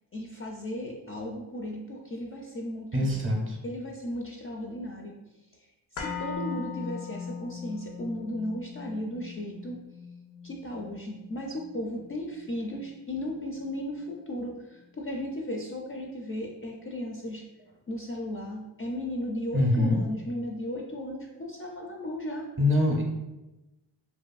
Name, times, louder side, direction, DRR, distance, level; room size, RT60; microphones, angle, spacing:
voice 1, 0.1-3.3 3.6-5.1 5.9-9.8 10.4-17.4 17.9-22.5, left 1 dB, 30° left, -1 dB, 0.4 m, -35 dB
voice 2, 2.9-3.6 19.5-20.0 22.6-23.0, left 1 dB, 25° right, 0 dB, 0.6 m, -24 dB
sound 1, 6.0-14.0 14.3-14.4, left 6 dB, 75° left, 0.6 m, -40 dB
2.5 x 2.5 x 2.3 m, 1.0 s
cardioid pair, 55°, 47 cm